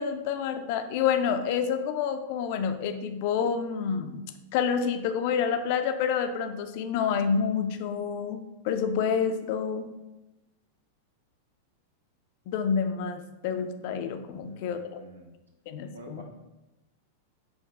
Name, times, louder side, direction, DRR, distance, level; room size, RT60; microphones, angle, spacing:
voice 1, 0.0-4.3 4.5-9.9 12.5-15.0 15.7-16.2, left 7 dB, 50° left, 8 dB, 0.3 m, -28 dB
voice 2, 14.4-15.3 15.9-16.2, right 2 dB, 75° right, 1 dB, 0.7 m, -48 dB
4.7 x 2.3 x 3.5 m, 1.0 s
figure-of-eight pair, 95°, 0 cm